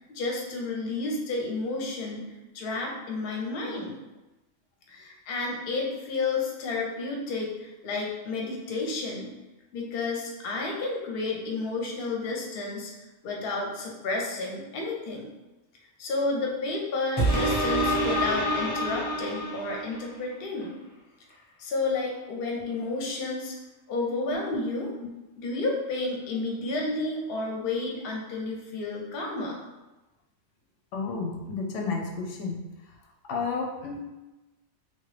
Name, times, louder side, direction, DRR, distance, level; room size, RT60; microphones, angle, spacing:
voice 1, 0.0-2.3 2.5-4.0 4.9-9.3 9.7-12.9 13.2-15.3 16.0-20.8 21.6-23.5 23.9-24.9 25.4-29.6, left 3 dB, 60° left, 0 dB, 0.8 m, -31 dB
sound 1, 17.2-20.1 20.6-20.7, right 1 dB, 25° left, 0.7 m, -27 dB
voice 2, 30.9-32.6 33.3-34.0, left 4 dB, 90° left, 1 dB, 0.9 m, -31 dB
2.9 x 2.2 x 3.1 m, 1.0 s
omnidirectional pair, 1.2 m